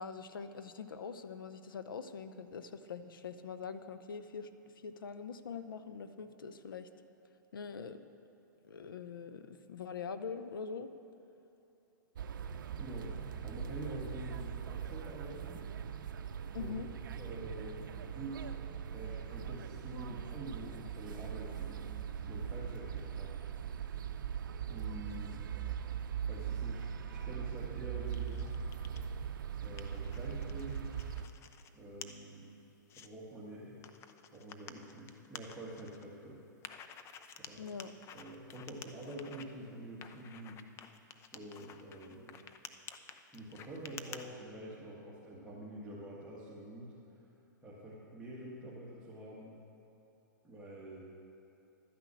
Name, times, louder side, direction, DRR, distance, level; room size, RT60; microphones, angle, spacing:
voice 1, 0.0-6.9 7.5-8.1 8.6-10.9 16.5-16.9 37.6-37.9, left 6 dB, 85° left, 10 dB, 0.7 m, -43 dB
sound 1, 12.2-31.3, right 8 dB, 70° right, 0.6 m, -41 dB
voice 2, 12.8-15.7 16.6-16.8 17.1-17.9 18.1-18.5 18.9-23.3 24.7-25.5 26.2-28.5 29.6-31.0 31.7-32.5 33.0-33.8 34.3-36.4 37.4-37.7 38.1-40.6 41.3-42.4 43.3-47.2 47.6-49.6 50.4-51.1, right 1 dB, 5° right, -8 dB, 1.8 m, -47 dB
sound 2, 28.1-29.0 29.5-31.7 32.0-32.1 32.6-33.1 33.8-36.0 36.6-39.4 40.0-44.2, left 8 dB, 25° left, 0.5 m, -51 dB
12.0 x 6.0 x 8.5 m, 2.9 s
hypercardioid pair, 125°, 11 cm